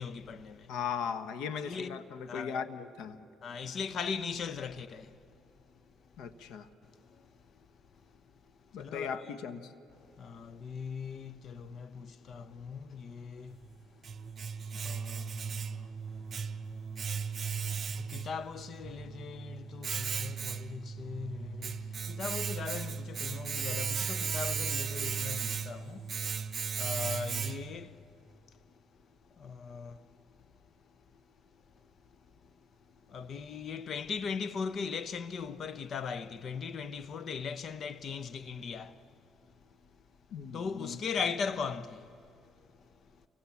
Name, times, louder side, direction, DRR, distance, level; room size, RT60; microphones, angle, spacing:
voice 1, 0.0-0.7 1.6-2.7 3.4-5.2 7.1-7.3 8.7-9.4 10.2-13.6 14.7-15.9 17.9-26.2 26.8-28.0 29.4-30.1 33.1-39.0 40.5-42.2, left 5 dB, 50° left, 0.9 m, -39 dB
voice 2, 0.7-3.2 6.2-6.7 8.7-9.7 40.3-41.0, left 7 dB, 85° left, 1.3 m, -38 dB
Domestic sounds home sounds, 13.5-27.9, right 6 dB, 40° right, 0.8 m, -36 dB
29.0 x 24.0 x 7.2 m
cardioid pair, 110°, 0 cm